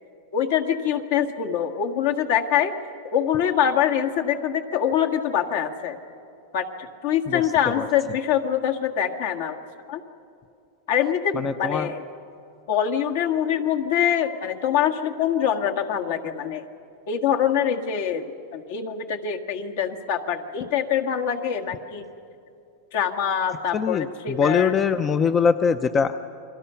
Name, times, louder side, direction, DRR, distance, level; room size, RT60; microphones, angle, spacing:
voice 1, 0.3-2.7 3.1-6.0 6.5-9.6 9.9-10.0 10.9-12.1 12.7-16.6 17.1-22.1 22.9-24.7, left 9 dB, 60° left, 3 dB, 1.8 m, -24 dB
voice 2, 11.3-11.9 23.7-26.2, left 6 dB, 20° left, 11 dB, 0.5 m, -22 dB
29.5 x 23.0 x 5.7 m, 2.6 s
supercardioid pair, 150°, 0 cm